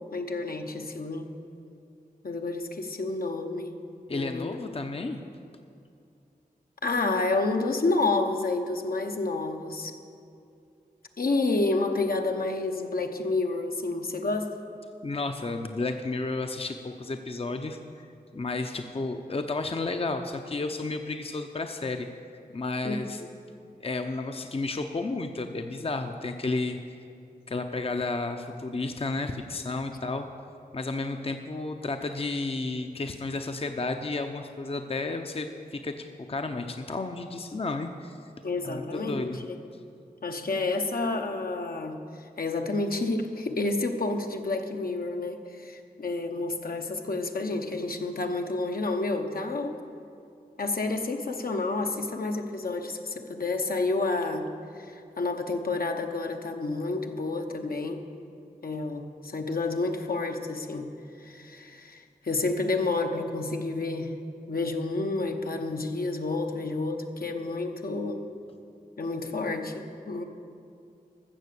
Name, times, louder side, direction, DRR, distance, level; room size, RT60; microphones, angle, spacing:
voice 1, 0.1-1.3 2.2-3.8 4.1-4.6 6.8-9.9 11.2-14.5 22.8-23.1 38.4-39.4 40.2-42.0 42.4-49.8 50.6-54.5 54.8-58.0 58.6-60.9 61.2-64.1 64.5-68.2 69.0-70.2, left 3 dB, 70° left, 4 dB, 0.9 m, -29 dB
voice 2, 4.1-5.2 15.0-18.0 18.3-23.2 23.8-26.8 27.5-30.3 30.7-38.2 38.6-39.4, left 3 dB, 40° left, 6 dB, 0.6 m, -32 dB
15.0 x 6.8 x 6.8 m, 2.5 s
wide cardioid pair, 60°, 16 cm